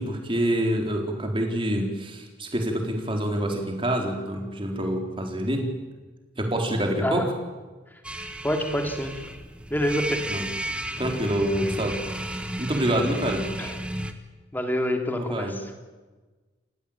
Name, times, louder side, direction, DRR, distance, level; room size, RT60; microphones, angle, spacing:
voice 1, 0.0-5.6 6.4-7.3 10.3-10.4 11.0-13.4 15.1-15.6, right 1 dB, 30° right, 2 dB, 4.1 m, -27 dB
sound 1, 8.0-14.1, right 1 dB, 5° right, 1.5 m, -33 dB
voice 2, 8.4-9.2 9.7-10.2 13.6-13.8 14.5-15.7, equal, 10° left, 4 dB, 2.9 m, -27 dB
29.5 x 15.5 x 8.9 m, 1.3 s
head